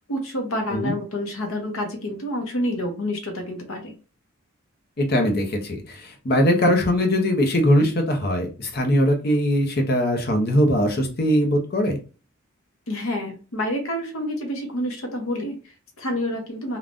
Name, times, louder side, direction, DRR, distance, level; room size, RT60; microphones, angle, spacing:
voice 1, 0.1-3.9 12.9-16.8, left 1 dB, 75° left, 3 dB, 0.9 m, -28 dB
voice 2, 5.0-12.0, equal, 45° left, 3 dB, 0.7 m, -21 dB
3.5 x 2.3 x 2.5 m, 0.34 s
head